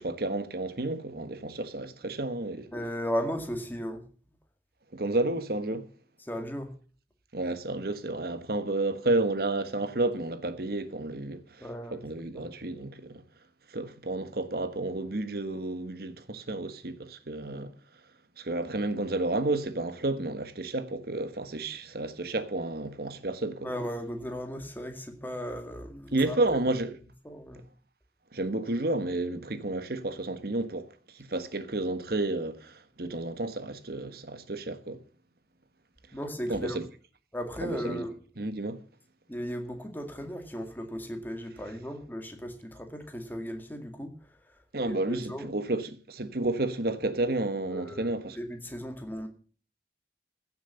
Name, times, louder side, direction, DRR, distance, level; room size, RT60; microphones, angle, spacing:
voice 1, 0.0-2.7 4.9-5.9 7.3-13.2 13.7-17.7 18.4-23.7 26.1-27.0 28.3-35.0 36.5-36.8 37.6-38.0 38.4-38.8 44.7-48.4, right 2 dB, 60° right, 1.4 m, -31 dB
voice 2, 2.7-4.0 6.2-6.7 11.6-12.0 12.3-12.4 23.6-26.6 27.2-27.6 36.1-36.8 37.3-38.1 39.3-44.2 44.8-45.5 47.7-49.3, equal, 10° left, 2.1 m, -36 dB
15.5 x 7.1 x 7.0 m
head